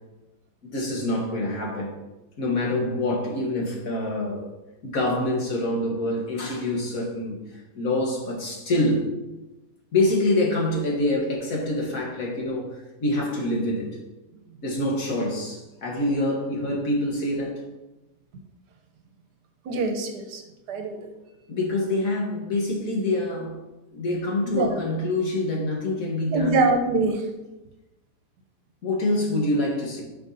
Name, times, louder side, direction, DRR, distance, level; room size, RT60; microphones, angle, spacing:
voice 1, 0.6-2.0 2.4-4.5 4.8-9.0 9.9-14.0 14.6-17.7 21.5-23.5 23.9-26.6 28.8-30.0, left 1 dB, 60° left, -1 dB, 1.8 m, -26 dB
voice 2, 19.7-20.4 20.7-21.0 24.5-24.8 26.3-27.2, right 3 dB, 80° right, 5 dB, 1.4 m, -23 dB
9.7 x 5.3 x 2.7 m, 1.0 s
omnidirectional pair, 1.8 m